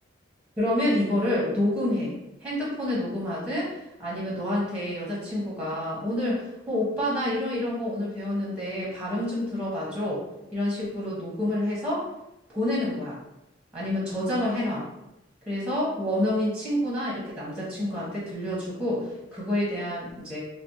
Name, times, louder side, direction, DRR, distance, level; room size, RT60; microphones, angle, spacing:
voice 1, 0.6-2.1 2.4-3.7 4.0-10.2 10.5-12.1 12.5-13.2 13.7-14.9 15.5-20.4, left 1 dB, 5° right, -7 dB, 0.7 m, -28 dB
2.5 x 2.0 x 2.6 m, 0.87 s
head